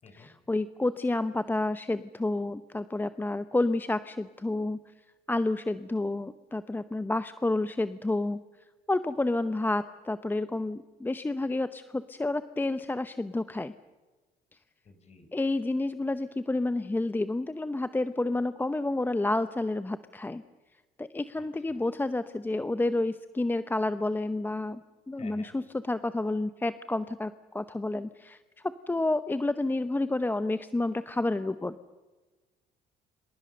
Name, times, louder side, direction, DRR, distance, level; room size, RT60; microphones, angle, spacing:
voice 1, 0.1-4.8 5.3-8.4 8.9-13.7 15.3-20.4 21.0-24.8 25.1-28.4 28.6-31.8, left 2 dB, 10° left, 12 dB, 0.8 m, -30 dB
voice 2, 14.8-15.3 21.4-21.9 25.2-25.5, left 4 dB, 40° left, 7 dB, 5.4 m, -52 dB
27.0 x 26.0 x 6.7 m, 1.2 s
cardioid pair, 110°, 17 cm